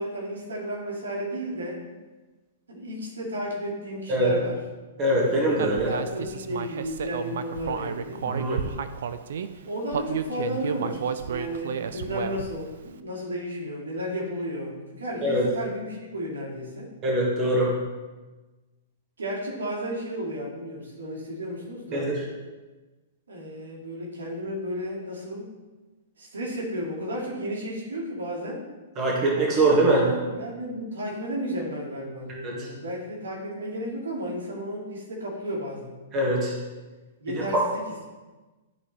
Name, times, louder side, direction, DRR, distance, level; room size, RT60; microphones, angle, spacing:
voice 1, 0.0-1.8 2.7-4.6 5.2-8.3 9.7-16.9 19.2-22.1 23.3-25.5 26.2-28.7 29.6-29.7 30.0-35.9 37.2-37.8, equal, 90° right, -3 dB, 2.4 m, -33 dB
voice 2, 5.0-5.9 8.2-8.6 15.2-15.5 17.0-17.7 21.9-22.1 29.0-30.1 32.4-32.7 36.1-36.5 37.3-37.6, right 1 dB, 30° right, -3 dB, 2.0 m, -23 dB
Human voice, 5.6-9.5 9.9-12.6, right 7 dB, 70° right, 0.5 m, -31 dB
12.5 x 4.2 x 3.4 m, 1.2 s
hypercardioid pair, 130°, 0 cm